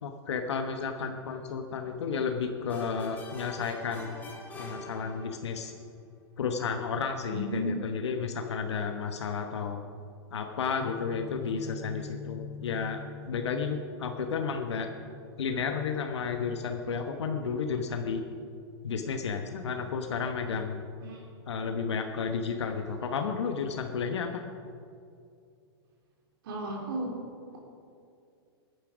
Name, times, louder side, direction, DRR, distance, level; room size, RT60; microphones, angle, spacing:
voice 1, 0.0-4.3 4.5-5.7 6.4-9.8 10.3-13.0 13.3-14.9 15.4-18.2 18.8-20.8 21.5-24.5, left 5 dB, 90° left, 5 dB, 1.2 m, -32 dB
sound 1, 2.7-5.6, left 2 dB, 15° left, 1.8 m, -44 dB
voice 2, 7.3-7.8 21.0-21.3 26.4-27.1 27.5-27.6, right 1 dB, 55° right, -1 dB, 3.2 m, -34 dB
Guitar, 10.8-18.6, left 6 dB, 30° left, 0.8 m, -47 dB
16.5 x 10.0 x 5.1 m, 2.4 s
hypercardioid pair, 160°, 14 cm